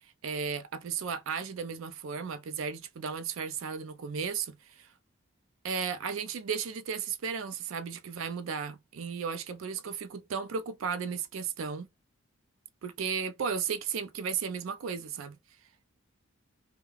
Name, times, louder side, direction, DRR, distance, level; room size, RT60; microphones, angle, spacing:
voice 1, 0.2-4.9 5.6-11.9 12.8-15.4, right 6 dB, 70° right, 0.4 m, -35 dB
2.3 x 2.2 x 3.1 m
head